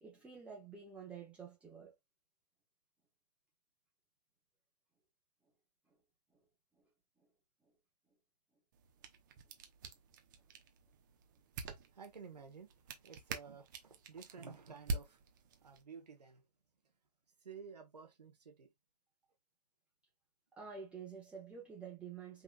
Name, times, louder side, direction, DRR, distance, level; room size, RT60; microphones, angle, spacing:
voice 1, 0.0-1.9 20.6-22.4, right 6 dB, 5° right, 1.1 m, -49 dB
sound 1, 8.7-15.8, right 3 dB, 30° right, 0.9 m, -47 dB
voice 2, 11.9-12.7 13.0-15.2 15.6-16.4 17.4-18.7, right 5 dB, 70° right, 1.4 m, -53 dB
5.3 x 3.6 x 2.3 m
figure-of-eight pair, 140°, 21 cm